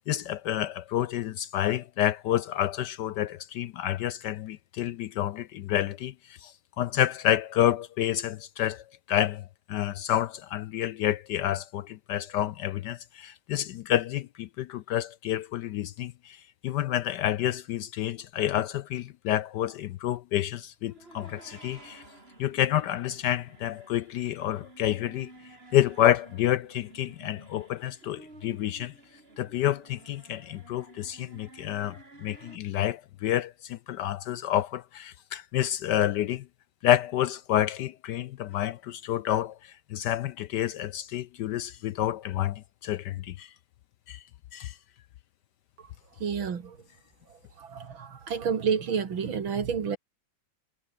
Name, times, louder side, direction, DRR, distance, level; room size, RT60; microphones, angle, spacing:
voice 1, 0.0-22.0 22.4-28.9 29.4-36.5 36.8-43.5 44.1-44.2 44.5-44.8, left 12 dB, 70° left, 1.1 m, -29 dB
sound 1, 20.8-32.6, right 2 dB, 30° right, 3.7 m, -52 dB
voice 2, 46.2-46.8 47.3-50.0, right 6 dB, 80° right, 2.9 m, -30 dB
omnidirectional pair, 2.1 m